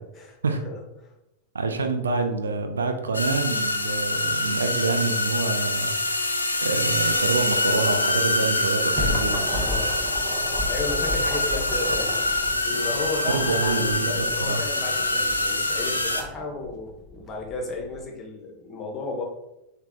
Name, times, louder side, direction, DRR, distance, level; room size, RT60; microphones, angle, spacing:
voice 1, 0.6-1.1 9.5-9.9 10.7-12.1 12.6-19.2, left 3 dB, 25° left, 0 dB, 0.9 m, -33 dB
voice 2, 1.5-6.2 6.6-9.7 13.3-14.6, right 4 dB, 70° right, 5 dB, 0.4 m, -27 dB
sound 1, 3.1-16.2, left 2 dB, 80° left, 0.4 m, -25 dB
sound 2, 8.9-18.0, left 1 dB, 10° right, 0.8 m, -35 dB
3.3 x 2.2 x 3.6 m, 0.88 s
figure-of-eight pair, 90°, 0 cm